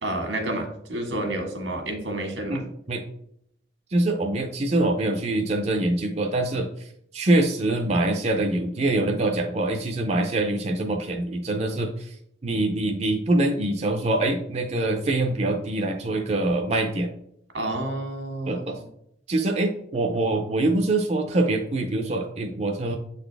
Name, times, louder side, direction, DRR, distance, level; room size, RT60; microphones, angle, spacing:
voice 1, 0.0-2.6 17.5-18.8, right 1 dB, 85° right, 3 dB, 1.6 m, -30 dB
voice 2, 2.5-3.0 3.9-6.7 7.1-12.1 12.4-17.1 18.5-18.8 19.3-23.0, right 2 dB, 35° right, 3 dB, 0.5 m, -24 dB
7.6 x 4.0 x 3.3 m, 0.71 s
head